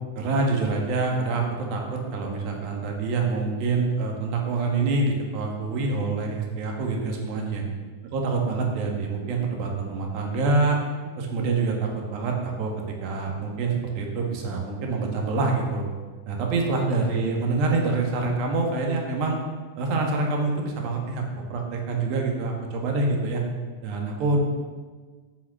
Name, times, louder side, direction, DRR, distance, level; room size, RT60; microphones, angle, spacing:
voice 1, 0.2-7.6 8.0-10.8 11.2-12.7 13.0-15.8 16.3-19.4 19.8-23.4 23.8-24.4, right 3 dB, 40° right, 1 dB, 1.9 m, -26 dB
8.1 x 5.9 x 6.1 m, 1.4 s
figure-of-eight pair, 90°, 0 cm